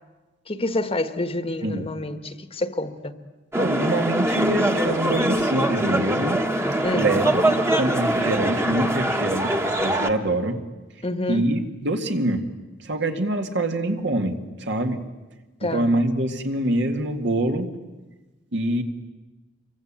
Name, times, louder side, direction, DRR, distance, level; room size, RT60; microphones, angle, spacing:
voice 1, 0.5-3.1 6.8-7.1 11.0-11.5 15.6-15.9, left 2 dB, 30° left, 10 dB, 1.3 m, -28 dB
sound 1, 3.5-10.1, right 1 dB, 15° right, 1.4 m, -23 dB
voice 2, 3.6-6.4 6.9-10.6 11.3-12.5 12.8-15.0 15.6-17.7 18.5-18.8, right 1 dB, 65° right, 5 dB, 2.2 m, -25 dB
27.5 x 23.5 x 8.9 m, 1.2 s
head